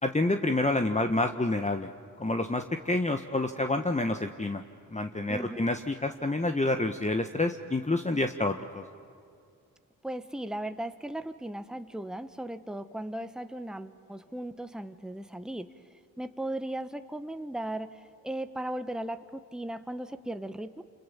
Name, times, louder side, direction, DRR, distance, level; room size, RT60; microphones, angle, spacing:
voice 1, 0.0-1.9 2.2-4.6 4.9-8.8, left 2 dB, 15° left, 6 dB, 1.5 m, -28 dB
voice 2, 5.3-5.7 10.0-15.7 16.2-20.8, right 1 dB, ahead, 10 dB, 1.3 m, -37 dB
29.0 x 27.5 x 7.2 m, 2.3 s
hypercardioid pair, 40°, 42 cm